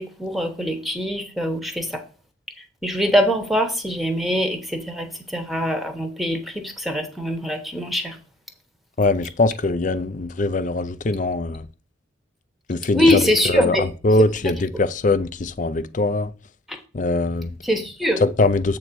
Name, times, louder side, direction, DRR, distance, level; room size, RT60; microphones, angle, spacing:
voice 1, 0.0-2.0 2.6-8.2 12.9-13.9 14.2-14.5 16.7-16.8 17.6-18.2, equal, ahead, 1.0 m, -23 dB
voice 2, 9.0-11.7 12.7-16.3 16.9-17.5 18.2-18.8, left 2 dB, 40° left, 0.5 m, -22 dB
8.0 x 3.9 x 6.1 m
head